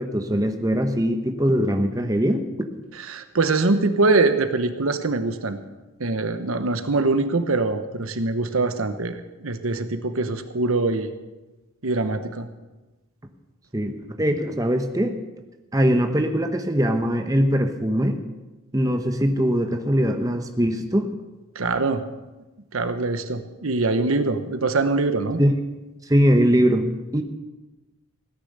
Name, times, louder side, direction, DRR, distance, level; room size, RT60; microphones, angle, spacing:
voice 1, 0.0-2.7 13.7-15.2 15.7-18.2 18.7-21.1 25.4-25.5 26.1-27.2, equal, 15° right, 5 dB, 0.9 m, -21 dB
voice 2, 3.0-5.6 6.0-9.2 9.4-11.1 11.8-12.5 21.5-22.0 22.7-25.4, right 3 dB, 80° right, 9 dB, 1.1 m, -23 dB
16.5 x 10.0 x 6.7 m, 1.1 s
head